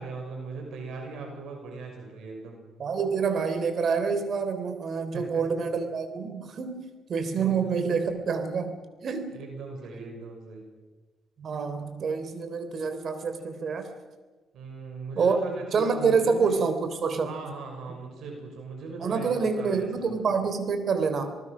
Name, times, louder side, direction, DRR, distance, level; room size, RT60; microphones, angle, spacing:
voice 1, 0.0-2.6 5.1-5.4 7.3-7.8 9.3-10.6 14.5-16.6 17.2-20.2, right 4 dB, 75° right, 3 dB, 5.8 m, -39 dB
voice 2, 2.8-8.8 9.0-9.4 11.4-13.9 15.2-15.4 15.7-17.3 19.0-21.3, right 5 dB, 55° right, 9 dB, 3.5 m, -27 dB
27.5 x 19.5 x 6.2 m, 1.3 s
cardioid pair, 90°, 0 cm